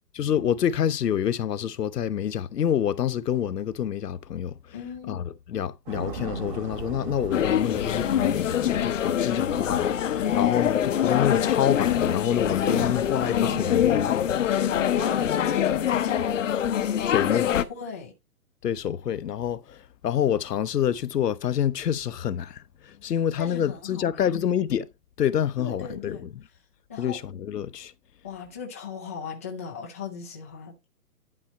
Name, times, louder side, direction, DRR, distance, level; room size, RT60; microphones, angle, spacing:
voice 1, 0.1-4.6 5.1-14.2 17.0-17.5 18.6-24.9 25.2-26.3 27.0-27.9, left 9 dB, 85° left, 0.8 m, -27 dB
voice 2, 4.7-5.2 12.7-13.7 14.6-16.4 17.0-18.1 23.4-24.4 25.6-26.3 26.9-27.2 28.2-30.7, left 6 dB, 10° left, 0.5 m, -36 dB
sound 1, 5.9-14.1, right 3 dB, 30° right, 2.7 m, -39 dB
sound 2, 7.3-17.6, left 10 dB, 55° left, 0.8 m, -24 dB
11.0 x 4.3 x 4.2 m
hypercardioid pair, 155°, 47 cm